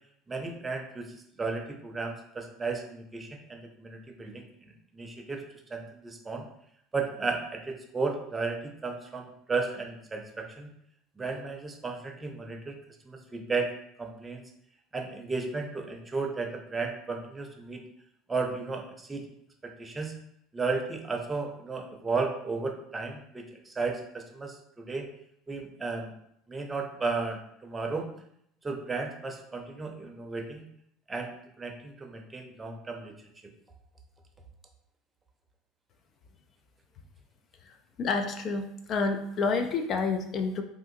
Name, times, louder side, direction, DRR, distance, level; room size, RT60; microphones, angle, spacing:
voice 1, 0.3-5.4 5.7-6.5 6.9-10.7 11.2-12.8 13.1-13.7 14.0-14.4 14.9-17.8 18.3-19.3 19.6-20.1 20.5-25.1 25.5-26.1 26.5-28.1 28.6-30.7 31.1-31.3 31.6-33.1, right 4 dB, 20° right, 3 dB, 0.6 m, -34 dB
voice 2, 38.0-40.6, left 4 dB, 45° left, 7 dB, 0.3 m, -29 dB
3.5 x 2.5 x 2.6 m, 0.73 s
hypercardioid pair, 70°, 0 cm